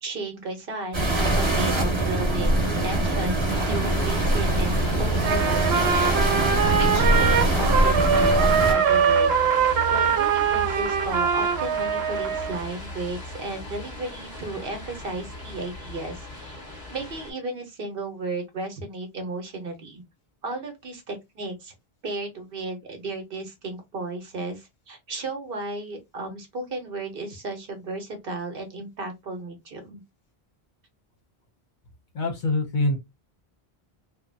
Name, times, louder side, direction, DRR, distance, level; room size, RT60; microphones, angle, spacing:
voice 1, 0.0-9.3 9.9-16.5 16.9-20.0 20.4-21.7 22.0-30.0, right 2 dB, 65° right, 1.0 m, -34 dB
sound 1, 0.9-8.7, right 1 dB, 30° right, 0.8 m, -23 dB
sound 2, 3.5-17.3, equal, 25° left, 0.8 m, -35 dB
Trumpet, 5.2-12.6, right 6 dB, 85° right, 0.8 m, -22 dB
voice 2, 32.1-33.0, left 2 dB, 55° left, 0.7 m, -24 dB
2.6 x 2.1 x 2.5 m
omnidirectional pair, 1.0 m